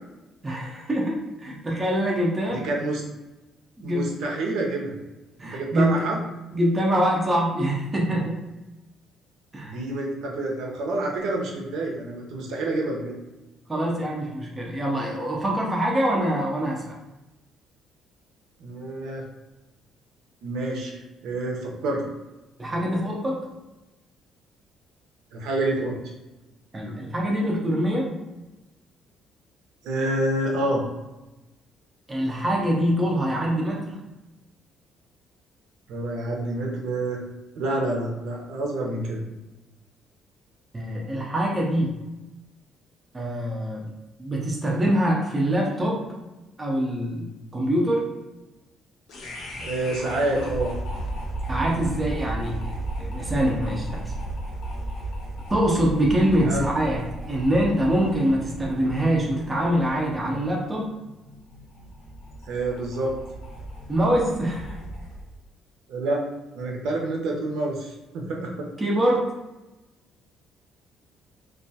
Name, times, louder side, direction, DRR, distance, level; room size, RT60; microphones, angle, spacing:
voice 1, 0.4-2.6 3.8-4.1 5.4-6.0 6.5-8.4 9.5-9.8 13.7-17.0 22.6-23.4 26.7-28.1 32.1-34.0 40.7-42.0 43.1-43.8 44.2-46.0 46.6-48.1 51.5-54.1 55.5-60.9 63.9-64.8 68.8-69.3, equal, 15° right, -2 dB, 0.4 m, -24 dB
voice 2, 2.5-3.0 3.8-4.9 5.4-6.2 9.6-13.1 18.6-19.2 20.4-22.0 25.3-25.9 29.8-30.8 35.9-37.2 37.6-39.2 49.6-50.7 56.4-56.6 62.5-63.1 65.9-66.2 66.6-68.7, right 2 dB, 75° right, -1 dB, 0.5 m, -28 dB
sound 1, 49.1-65.3, right 1 dB, 65° left, 0.6 m, -35 dB
2.2 x 2.1 x 2.6 m, 1.0 s
cardioid pair, 175°, 0 cm